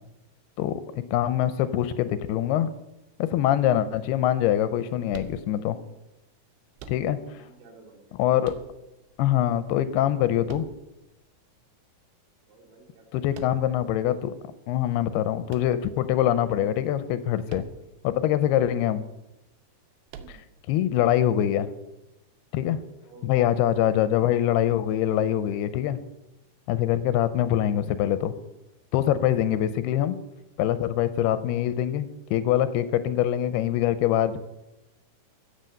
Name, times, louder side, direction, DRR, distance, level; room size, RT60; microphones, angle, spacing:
voice 1, 1.1-2.7 3.2-5.8 6.9-7.4 8.2-8.5 9.2-10.7 13.1-14.3 14.7-17.7 18.0-19.0 20.3-20.4 20.7-21.7 22.5-22.8 23.2-26.0 26.7-28.3 28.9-30.2 30.6-34.4, left 11 dB, 85° left, 13 dB, 2.6 m, -24 dB
sound 1, 5.1-5.9 6.8-7.5 8.4-9.1 10.5-11.3 13.3-13.9 15.5-16.4 17.5-18.0 18.3-18.4 20.1-20.7, right 7 dB, 75° right, 2.7 m, -45 dB
voice 2, 7.2-8.2 12.5-13.7 20.1-20.4 23.0-23.6, right 3 dB, 60° right, 2 dB, 3.8 m, -53 dB
15.0 x 8.0 x 6.5 m, 0.93 s
omnidirectional pair, 4.7 m